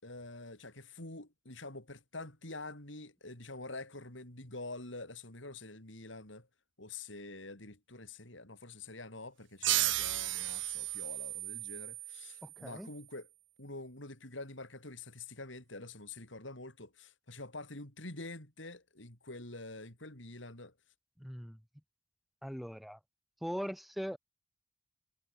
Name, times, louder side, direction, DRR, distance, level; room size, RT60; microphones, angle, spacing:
voice 1, 0.0-6.5 6.8-13.3 13.6-20.7, left 2 dB, 70° left, 5.5 m, -46 dB
sound 1, 9.6-12.9, right 16 dB, 70° right, 0.9 m, -34 dB
voice 2, 12.4-12.9 21.2-21.6 22.4-23.0 23.4-24.2, equal, ahead, 4.8 m, -40 dB
head